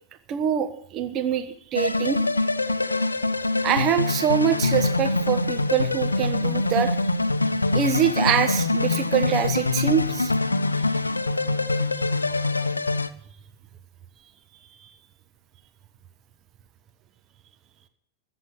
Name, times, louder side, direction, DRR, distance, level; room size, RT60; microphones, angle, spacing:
voice 1, 0.3-2.2 3.6-6.9 7.7-10.3 14.8-14.9, right 9 dB, 35° right, 9 dB, 1.0 m, -24 dB
sound 1, 1.8-13.1, left 3 dB, 80° left, 0.6 m, -24 dB
13.5 x 8.0 x 7.1 m, 0.64 s
figure-of-eight pair, 90°, 0 cm